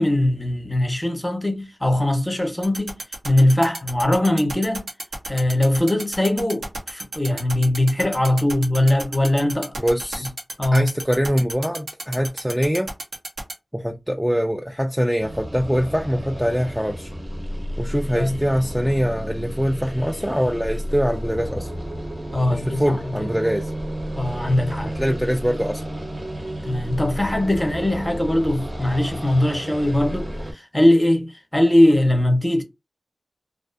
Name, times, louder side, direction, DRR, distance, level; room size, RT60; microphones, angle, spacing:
voice 1, 0.0-2.9 3.2-4.9 5.3-9.7 10.2-10.3 10.6-10.9 18.2-18.4 22.3-23.0 24.1-24.9 26.6-32.6, left 1 dB, 15° left, 0.7 m, -20 dB
sound 1, 2.6-13.5, right 2 dB, 85° right, 0.7 m, -31 dB
voice 2, 9.8-10.3 10.7-12.9 13.7-17.1 17.8-21.7 22.5-23.7 24.9-25.8, equal, ahead, 0.3 m, -23 dB
sound 2, 15.2-30.5, equal, 40° right, 0.8 m, -32 dB
2.4 x 2.4 x 2.4 m
wide cardioid pair, 55°, 0 cm